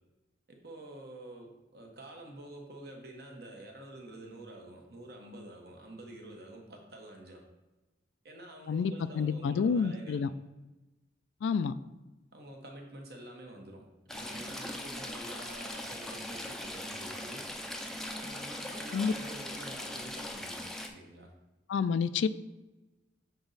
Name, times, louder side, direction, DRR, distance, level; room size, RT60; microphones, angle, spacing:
voice 1, 0.5-7.4 8.2-10.2 12.3-17.5 18.1-21.3, right 1 dB, 55° right, 1 dB, 1.1 m, -48 dB
voice 2, 8.7-10.3 11.4-11.7 18.9-19.1 21.7-22.3, left 6 dB, 80° left, 14 dB, 0.3 m, -29 dB
Stream / Trickle dribble, 14.1-20.9, left 1 dB, ahead, 0.4 m, -40 dB
7.0 x 4.0 x 4.0 m, 1.1 s
head